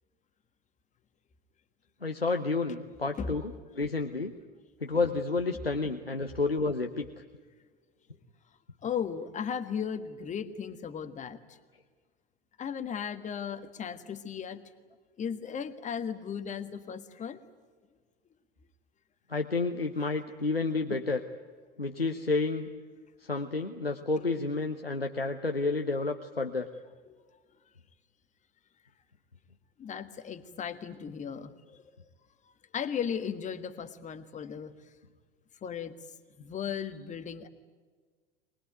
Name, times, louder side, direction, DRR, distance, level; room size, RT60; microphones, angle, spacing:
voice 1, 2.0-4.3 4.8-7.1 19.3-21.2 21.8-22.7 23.2-26.7, left 3 dB, 90° left, 5 dB, 1.0 m, -30 dB
voice 2, 8.8-11.6 12.6-14.6 15.2-17.4 20.9-21.0 24.2-24.3 27.1-27.2 29.8-32.0 32.7-34.7 35.6-36.0 36.4-37.5, left 7 dB, 25° left, 10 dB, 1.6 m, -36 dB
24.0 x 20.5 x 9.2 m, 1.5 s
figure-of-eight pair, 80°, 29 cm